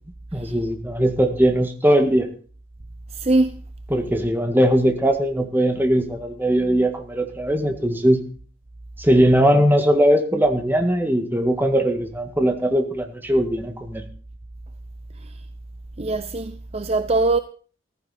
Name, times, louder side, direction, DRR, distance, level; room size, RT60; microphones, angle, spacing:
voice 1, 0.3-2.3 3.9-8.2 9.0-14.0, equal, 10° right, 1.8 m, -20 dB
voice 2, 3.1-3.6 15.1-15.4 16.0-17.4, right 2 dB, 30° right, 0.6 m, -22 dB
14.5 x 14.5 x 4.3 m
head